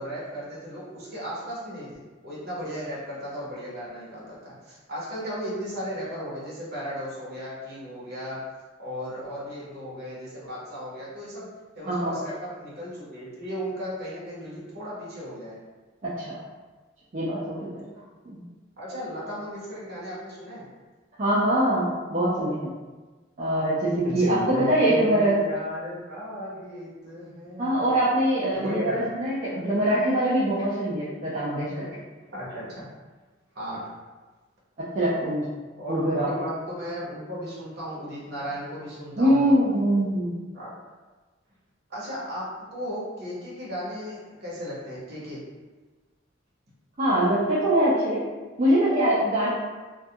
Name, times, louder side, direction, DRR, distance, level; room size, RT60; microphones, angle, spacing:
voice 1, 0.0-8.4 8.8-11.5 11.8-15.6 18.8-20.7 24.0-27.7 28.5-29.2 32.3-32.9 33.5-33.9 35.2-35.3 35.8-39.6 40.5-40.7 41.9-45.4, equal, 55° right, -7 dB, 0.8 m, -35 dB
voice 2, 11.9-12.2 16.0-16.4 17.1-17.8 18.3-18.4 21.2-22.7 23.4-25.3 27.6-32.0 34.9-35.4 35.9-36.3 39.2-40.3 47.0-48.2 48.6-49.5, right 1 dB, 40° right, -9 dB, 0.4 m, -23 dB
2.3 x 2.2 x 2.7 m, 1.3 s
head